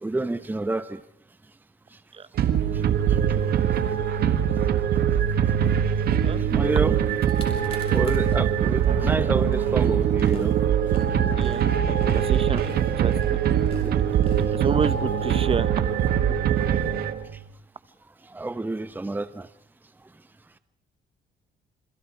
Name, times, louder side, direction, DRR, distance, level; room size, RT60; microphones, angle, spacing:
voice 1, 0.0-1.0 3.1-3.2 6.4-7.0 7.9-10.6 18.3-19.5, right 2 dB, 10° right, 13 dB, 0.9 m, -29 dB
sound 1, 2.4-17.4, right 9 dB, 70° right, 1.6 m, -22 dB
sound 2, 7.1-8.4 8.8-15.6, left 3 dB, 35° left, 7.1 m, -45 dB
sound 3, 8.9-16.9, right 5 dB, 55° right, 4.1 m, -39 dB
voice 2, 12.0-12.7 13.0-13.4 14.3-15.7, right 5 dB, 35° right, 15 dB, 1.2 m, -29 dB
28.5 x 26.5 x 4.8 m, 0.65 s
cardioid pair, 100°, 16 cm